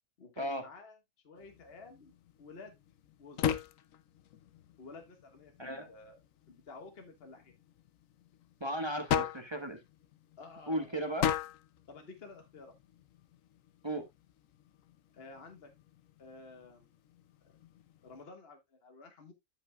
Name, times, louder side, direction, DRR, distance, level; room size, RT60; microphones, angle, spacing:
voice 1, 0.2-1.0 1.2-2.1 2.4-2.8 3.2-3.5 4.8-6.2 6.5-7.5 10.4-11.0 11.9-12.7 15.1-15.7 16.2-16.8 18.0-19.3, left 3 dB, 50° left, 1.6 m, -52 dB
sound 1, 1.3-18.2, left 9 dB, 80° left, 1.1 m, -41 dB
voice 2, 5.6-5.9 8.6-9.8 10.7-11.3 13.8-14.0, right 1 dB, 20° right, 1.3 m, -35 dB
13.5 x 5.4 x 2.2 m
omnidirectional pair, 1.4 m